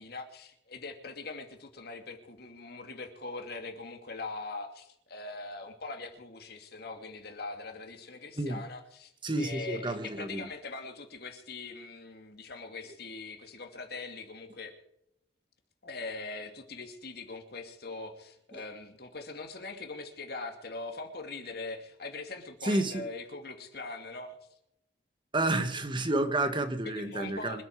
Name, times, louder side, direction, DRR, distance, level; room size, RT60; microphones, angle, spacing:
voice 1, 0.0-9.1 9.4-14.7 15.8-24.4 26.8-27.6, left 3 dB, 60° left, 4 dB, 2.8 m, -42 dB
voice 2, 8.4-8.7 9.2-10.5 18.5-18.6 22.6-23.1 25.3-27.6, right 2 dB, 25° right, 8 dB, 1.7 m, -30 dB
26.0 x 8.9 x 4.8 m, 0.77 s
head